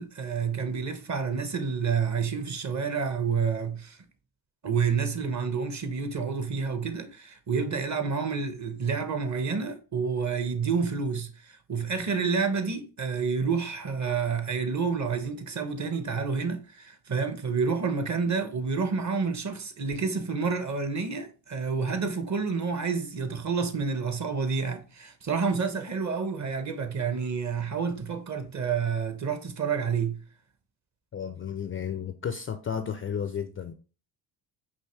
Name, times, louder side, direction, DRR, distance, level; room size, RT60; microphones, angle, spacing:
voice 1, 0.0-4.0 4.6-30.2, right 5 dB, 35° right, 1.0 m, -29 dB
voice 2, 31.1-33.7, left 7 dB, 30° left, 0.4 m, -33 dB
5.5 x 2.7 x 3.2 m
supercardioid pair, 65°, 49 cm